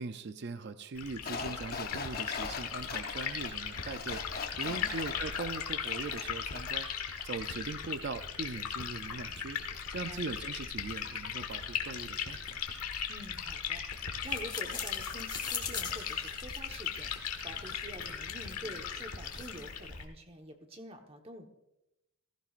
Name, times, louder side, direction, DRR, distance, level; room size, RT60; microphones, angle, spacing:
voice 1, 0.0-4.2 4.6-6.9 7.2-9.6 9.9-12.6, right 4 dB, 50° right, 11 dB, 0.5 m, -40 dB
Liquid, 0.9-20.0, left 7 dB, 85° left, 1.5 m, -38 dB
sound 1, 1.2-6.9 7.2-7.3, left 5 dB, 45° left, 0.8 m, -42 dB
voice 2, 13.1-21.5, right 1 dB, 25° right, 4 dB, 1.2 m, -47 dB
sound 2, 14.2-19.8, left 6 dB, 20° left, 1.2 m, -44 dB
16.0 x 15.5 x 2.5 m, 0.90 s
head